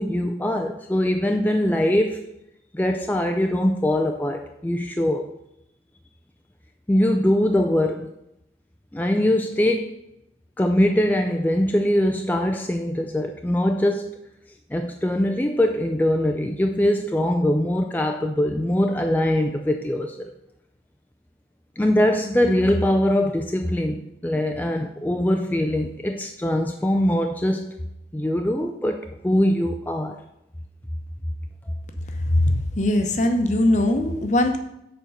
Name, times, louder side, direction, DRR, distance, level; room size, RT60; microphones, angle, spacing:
voice 1, 0.0-2.2 2.7-5.3 6.9-8.1 8.9-9.9 10.6-14.1 14.7-20.3 21.8-27.8 28.1-30.2, left 1 dB, 10° left, 3 dB, 0.4 m, -22 dB
voice 2, 32.2-34.6, left 1 dB, 45° left, 6 dB, 0.8 m, -20 dB
7.0 x 4.4 x 6.5 m, 0.82 s
head